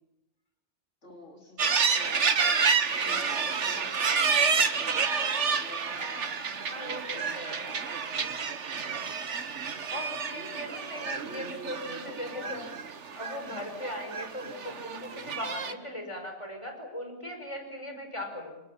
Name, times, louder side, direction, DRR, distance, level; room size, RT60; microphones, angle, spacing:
voice 1, 1.0-3.9 4.3-5.1 5.6-6.4 12.3-12.5 13.5-13.6, left 2 dB, 85° left, 1 dB, 4.1 m, -49 dB
sound 1, 1.6-15.7, right 5 dB, 80° right, 1.6 m, -29 dB
voice 2, 6.0-7.8 9.9-12.7 13.1-18.6, left 1 dB, 25° left, 4 dB, 5.5 m, -39 dB
27.5 x 27.0 x 7.2 m, 0.95 s
omnidirectional pair, 1.2 m